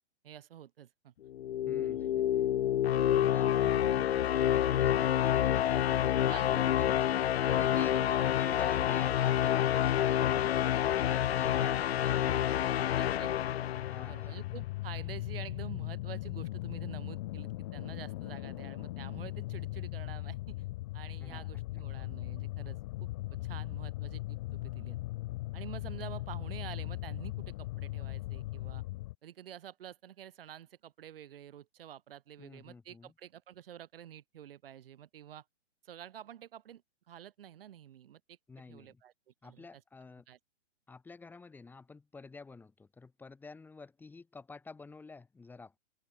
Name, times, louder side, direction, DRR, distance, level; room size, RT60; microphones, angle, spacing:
voice 1, 0.2-1.1 1.8-2.1 3.7-3.8 6.3-6.8 7.4-8.3 8.8-9.0 11.5-11.8 13.0-13.5 14.0-20.6 20.9-25.0 25.5-28.8 29.2-35.4 35.8-36.8 37.1-38.4 38.7-39.1 39.4-39.7 40.3-40.4, right 10 dB, 50° right, 6.6 m, -48 dB
sound 1, 1.3-14.4, left 11 dB, 60° left, 0.8 m, -28 dB
voice 2, 1.7-2.2 3.1-7.2 7.5-7.9 8.2-13.0 13.9-14.4 21.2-21.6 32.4-33.1 38.5-39.0 39.4-40.3 40.9-45.8, left 4 dB, 5° left, 5.5 m, -50 dB
sound 2, 13.7-29.2, left 18 dB, 25° left, 1.1 m, -39 dB
open air
hypercardioid pair, 170°, 35 cm